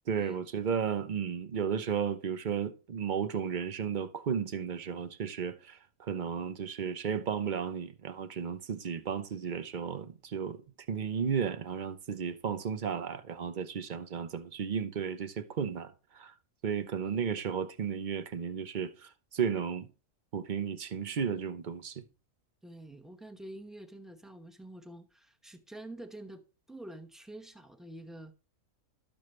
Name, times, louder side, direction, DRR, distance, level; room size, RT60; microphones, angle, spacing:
voice 1, 0.1-10.6 10.9-16.3 16.6-19.9 20.3-22.0, right 7 dB, 40° right, 0.8 m, -34 dB
voice 2, 22.6-26.4 26.7-28.3, right 1 dB, ahead, 0.7 m, -47 dB
12.0 x 7.1 x 3.2 m
omnidirectional pair, 1.4 m